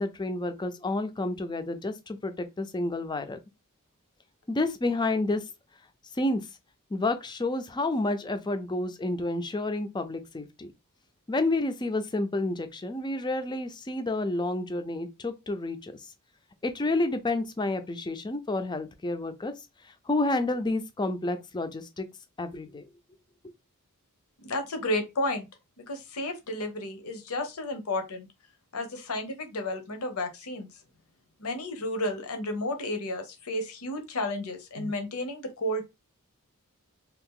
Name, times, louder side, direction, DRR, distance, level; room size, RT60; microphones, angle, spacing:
voice 1, 0.0-3.4 4.5-5.4 6.2-6.4 6.9-10.7 11.3-16.0 16.6-19.5 20.1-22.1 22.4-22.8, left 2 dB, 20° left, 0.4 m, -30 dB
voice 2, 24.4-25.5 25.8-28.3 28.7-30.7 31.4-35.9, left 1 dB, 70° left, 0.8 m, -32 dB
2.8 x 2.4 x 3.7 m
head